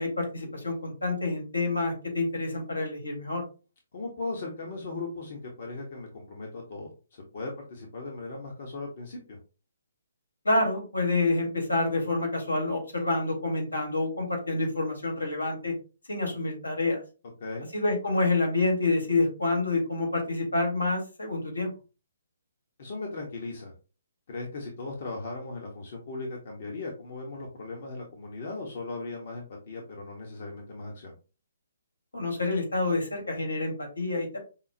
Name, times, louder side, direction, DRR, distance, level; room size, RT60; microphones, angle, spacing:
voice 1, 0.0-3.4 10.4-15.7 16.1-17.0 17.7-21.7 32.1-34.4, left 2 dB, 90° left, 2 dB, 1.9 m, -28 dB
voice 2, 3.9-9.4 17.4-17.7 22.8-23.7 24.3-31.1, left 3 dB, 50° left, 0 dB, 1.0 m, -38 dB
5.5 x 2.1 x 2.7 m, 0.33 s
hypercardioid pair, 140°, 0 cm